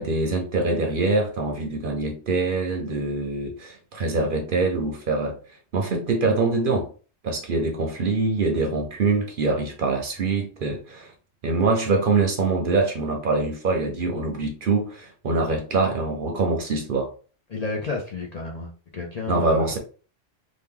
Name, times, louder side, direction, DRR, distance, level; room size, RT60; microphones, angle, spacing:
voice 1, 0.0-5.4 5.7-6.9 7.2-11.1 11.4-17.1 19.3-19.8, right 3 dB, 55° right, 0.7 m, -24 dB
voice 2, 17.5-19.7, left 3 dB, 50° left, 0.5 m, -31 dB
3.0 x 2.2 x 3.5 m
omnidirectional pair, 1.2 m